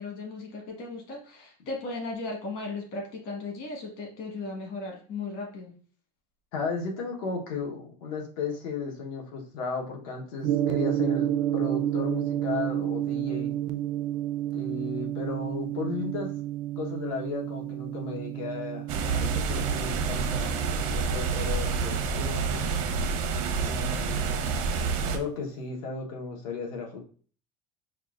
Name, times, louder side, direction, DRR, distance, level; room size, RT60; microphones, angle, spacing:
voice 1, 0.0-5.7, left 3 dB, 50° left, 0 dB, 1.5 m, -36 dB
voice 2, 6.5-13.5 14.5-16.3 16.8-22.6 23.6-24.5 25.1-27.0, left 4 dB, 80° left, 1 dB, 1.1 m, -35 dB
Gong, 10.4-24.6, right 12 dB, 50° right, 0.4 m, -31 dB
sound 1, 18.9-25.2, right 5 dB, 80° right, 0.7 m, -28 dB
5.4 x 2.4 x 2.5 m, 0.42 s
cardioid pair, 165°, 18 cm